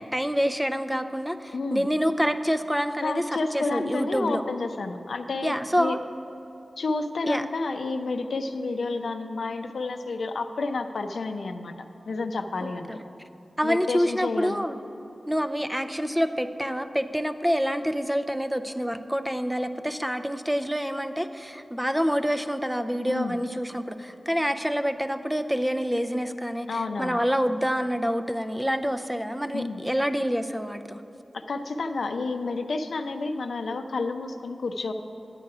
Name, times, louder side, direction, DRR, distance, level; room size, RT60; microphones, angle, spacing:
voice 1, 0.0-4.4 5.4-6.0 7.3-7.4 12.6-13.0 13.6-14.8 15.3-31.0, equal, 5° right, 9 dB, 0.4 m, -27 dB
voice 2, 1.5-1.9 3.0-6.0 6.8-11.7 12.1-12.9 13.6-14.6 23.1-23.4 26.7-27.2 29.5-29.8 31.3-34.9, left 3 dB, 80° left, 7 dB, 0.5 m, -30 dB
9.8 x 8.3 x 4.8 m, 2.9 s
wide cardioid pair, 100°, 0 cm